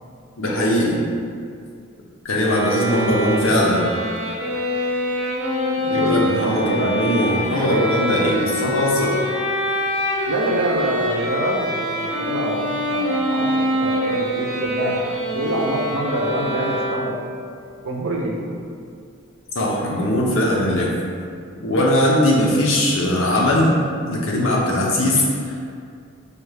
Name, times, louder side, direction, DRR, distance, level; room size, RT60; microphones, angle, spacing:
voice 1, 0.4-1.0 2.2-3.8 5.9-9.2 19.5-21.0 21.6-23.8 24.0-25.2 25.5-25.6, left 1 dB, 65° left, -3 dB, 0.7 m, -19 dB
sound 1, 2.4-17.4, equal, 35° right, 1.1 m, -25 dB
voice 2, 6.3-6.9 10.3-15.0 15.3-17.3 17.8-18.6, right 1 dB, 70° right, -1 dB, 0.6 m, -25 dB
4.8 x 2.4 x 3.2 m, 2.3 s
head